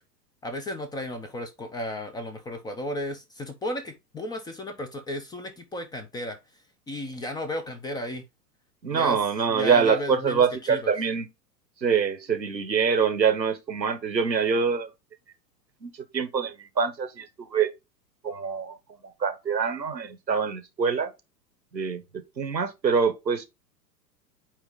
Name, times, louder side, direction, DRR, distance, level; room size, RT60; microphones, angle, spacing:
voice 1, 0.4-6.4 6.9-8.2 8.9-9.2 9.5-10.9, left 1 dB, 10° left, 0.6 m, -34 dB
voice 2, 8.8-11.3 11.8-14.9 15.8-17.7 18.2-18.8 19.2-21.1 21.7-23.4, right 6 dB, 85° right, 1.2 m, -25 dB
8.8 x 2.9 x 3.7 m
figure-of-eight pair, 95°, 50 cm